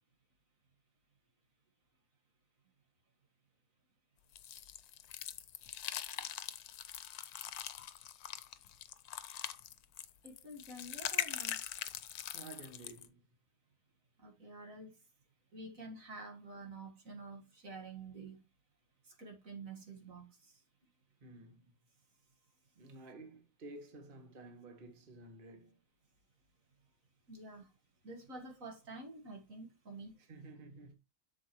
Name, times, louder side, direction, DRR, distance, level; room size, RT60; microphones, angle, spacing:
sound 1, 4.4-13.1, left 11 dB, 75° left, 1.2 m, -42 dB
voice 1, 10.2-11.6 14.2-14.9 15.5-18.4 19.0-20.6 27.3-27.7 28.0-30.2, right 2 dB, 55° right, 2.0 m, -49 dB
voice 2, 12.3-13.2 21.2-21.7 22.8-25.8 30.3-30.9, right 2 dB, 35° right, 1.6 m, -52 dB
8.0 x 7.0 x 3.0 m
omnidirectional pair, 1.7 m